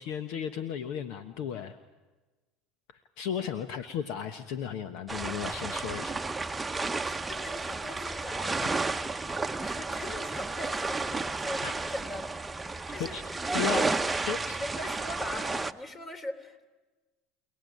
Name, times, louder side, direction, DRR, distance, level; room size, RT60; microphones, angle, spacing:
voice 1, 0.0-1.8 3.2-6.3 11.6-11.7 13.0-13.2 13.5-13.9 14.3-14.6, left 8 dB, 65° left, 9 dB, 1.2 m, -34 dB
sound 1, 5.1-15.7, right 3 dB, 15° right, 1.0 m, -32 dB
voice 2, 7.0-8.6 9.6-12.3 12.7-13.2 13.4-14.1 14.4-16.7, left 1 dB, 30° left, 7 dB, 3.4 m, -41 dB
29.0 x 18.5 x 9.5 m, 1.2 s
hypercardioid pair, 80°, 0 cm